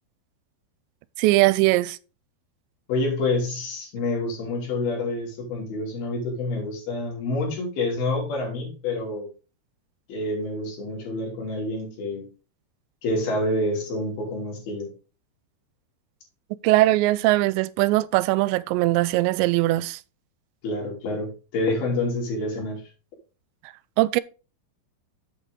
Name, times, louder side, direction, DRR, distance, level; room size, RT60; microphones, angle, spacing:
voice 1, 1.2-2.0 16.6-20.0 24.0-24.2, right 18 dB, 85° right, 2.8 m, -20 dB
voice 2, 2.9-9.3 10.1-12.2 13.0-14.9 20.6-22.8, left 2 dB, 60° left, 4.9 m, -27 dB
8.2 x 6.6 x 3.6 m
omnidirectional pair, 5.1 m